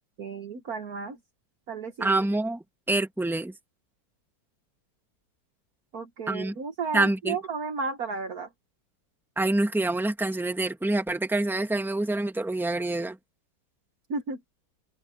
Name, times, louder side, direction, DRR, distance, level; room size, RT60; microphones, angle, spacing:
voice 1, 0.2-1.2 1.7-2.2 5.9-8.5 14.1-14.4, right 4 dB, 55° right, 1.6 m, -33 dB
voice 2, 2.0-2.6 2.9-3.5 6.3-6.5 6.9-7.4 9.4-13.2, right 2 dB, ahead, 1.9 m, -26 dB
omnidirectional pair, 2.0 m